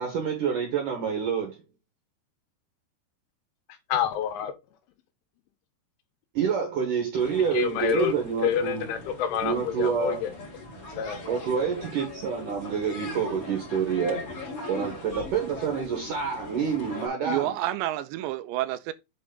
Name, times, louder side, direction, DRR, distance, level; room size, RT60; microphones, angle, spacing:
voice 1, 0.0-1.6 6.3-8.9 9.4-10.2 11.3-14.2 14.7-17.5, right 6 dB, 60° right, 2.3 m, -28 dB
voice 2, 3.9-4.5 7.5-8.1 8.4-10.3 10.9-11.2, left 9 dB, 85° left, 3.7 m, -27 dB
sound 1, 7.2-17.1, left 2 dB, 35° left, 3.4 m, -40 dB
voice 3, 17.2-18.9, right 14 dB, 80° right, 2.7 m, -29 dB
8.5 x 4.4 x 3.9 m
omnidirectional pair, 5.4 m